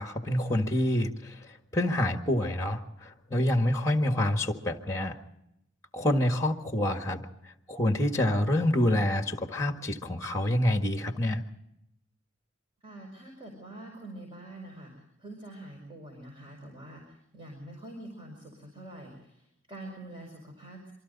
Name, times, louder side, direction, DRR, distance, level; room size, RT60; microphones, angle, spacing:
voice 1, 0.0-1.4 1.7-5.2 5.9-7.2 7.7-11.4, left 1 dB, 15° left, 5 dB, 1.7 m, -27 dB
voice 2, 12.8-14.9 15.2-20.9, right 1 dB, 25° right, 1 dB, 5.4 m, -45 dB
27.0 x 24.5 x 4.1 m, 0.81 s
head